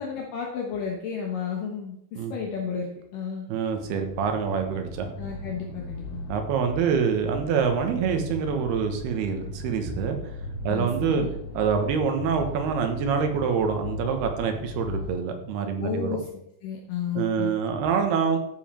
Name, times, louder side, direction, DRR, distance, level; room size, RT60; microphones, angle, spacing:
voice 1, 0.0-2.0 2.3-3.5 5.2-6.2 10.7-11.3 15.8-16.3 16.6-17.5, left 7 dB, 65° left, 0 dB, 2.6 m, -32 dB
voice 2, 3.5-5.1 6.3-10.2 10.6-11.3 11.5-16.2 17.1-18.4, right 6 dB, 90° right, 5 dB, 3.3 m, -26 dB
sound 1, 3.8-15.2, left 1 dB, 85° left, 1.3 m, -37 dB
12.5 x 7.5 x 4.4 m, 0.78 s
omnidirectional pair, 4.4 m